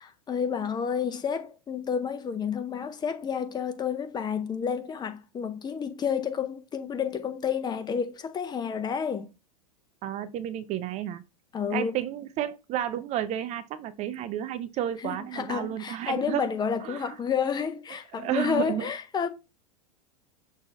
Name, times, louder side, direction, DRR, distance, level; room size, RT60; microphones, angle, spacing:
voice 1, 0.0-9.3 11.5-11.9 15.0-19.3, left 7 dB, 20° left, 0.6 m, -30 dB
voice 2, 10.0-11.2 11.7-16.5 16.8-17.2 18.1-18.9, right 11 dB, 35° right, 0.5 m, -31 dB
6.2 x 2.6 x 3.3 m
hypercardioid pair, 95°, 19 cm